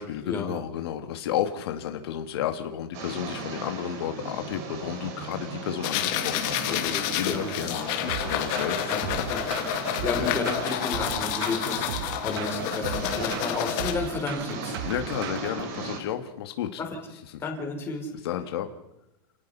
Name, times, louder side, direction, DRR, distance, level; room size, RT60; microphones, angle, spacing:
voice 1, 0.0-10.3 11.7-11.9 14.8-16.8 17.3-17.4 18.1-18.7, left 10 dB, 80° left, 6 dB, 2.3 m, -32 dB
sound 1, 2.9-16.0, right 4 dB, 45° right, 5.6 m, -37 dB
sound 2, 5.8-13.9, left 11 dB, 45° left, 2.7 m, -29 dB
voice 2, 6.7-7.5 8.9-9.0 9.3-9.5 10.0-14.8 16.8-16.9 17.4-18.1, left 4 dB, 20° left, 2 dB, 4.7 m, -32 dB
sound 3, 8.1-15.7, right 10 dB, 70° right, 1.8 m, -37 dB
29.5 x 19.0 x 5.7 m, 0.86 s
supercardioid pair, 165°, 13 cm